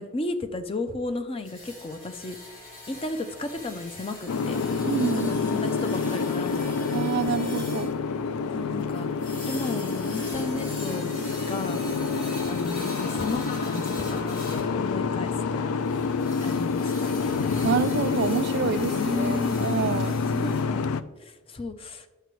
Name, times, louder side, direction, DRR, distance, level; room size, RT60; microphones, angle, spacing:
voice 1, 0.0-2.4 2.9-4.6 5.1-7.8 8.5-9.1 9.5-11.1 11.5-11.9 12.5-15.7 16.4-17.1 18.9-19.7 20.3-20.8 21.5-22.1, left 2 dB, 25° left, 0.5 m, -34 dB
sound 1, 1.4-14.7 15.8-20.6, left 1 dB, 40° left, 2.1 m, -42 dB
Boat Water vehicle, 4.3-21.0, left 5 dB, 85° left, 0.4 m, -28 dB
voice 2, 4.8-5.3 6.9-7.9 17.6-20.1, right 6 dB, 50° right, 0.3 m, -27 dB
9.7 x 6.7 x 3.1 m
head